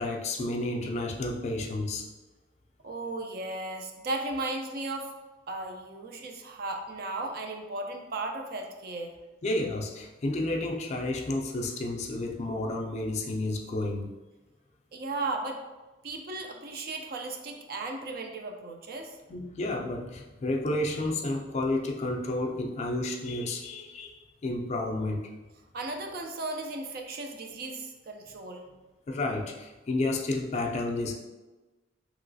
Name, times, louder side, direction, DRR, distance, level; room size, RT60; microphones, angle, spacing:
voice 1, 0.0-2.1 9.4-14.1 19.3-25.3 29.1-31.1, left 2 dB, 35° left, 1 dB, 0.3 m, -31 dB
voice 2, 2.8-5.1 5.5-9.1 14.9-15.6 16.0-19.2 25.7-28.7, right 2 dB, 55° right, 3 dB, 0.4 m, -35 dB
3.0 x 2.9 x 2.6 m, 1.2 s
head